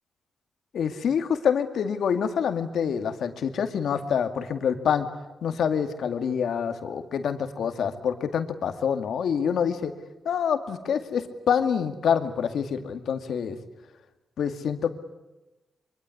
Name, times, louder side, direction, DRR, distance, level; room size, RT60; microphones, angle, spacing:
voice 1, 0.7-5.1 5.4-9.9 10.2-13.6 14.4-15.0, left 7 dB, 80° left, 8 dB, 2.2 m, -26 dB
25.0 x 24.5 x 9.8 m, 1.1 s
cardioid pair, 80°, 0 cm